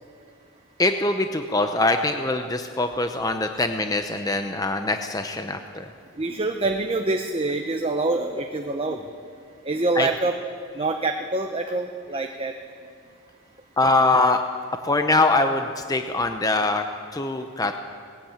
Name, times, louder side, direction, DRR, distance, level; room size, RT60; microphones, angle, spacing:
voice 1, 0.8-5.8 10.0-10.1 13.8-14.4 14.8-16.8 17.1-17.8, left 2 dB, 15° left, 6 dB, 0.6 m, -23 dB
voice 2, 6.2-9.0 9.6-10.3 10.7-12.5 14.9-15.0, right 2 dB, 25° right, 4 dB, 0.8 m, -26 dB
19.5 x 16.0 x 8.7 m, 2.3 s
head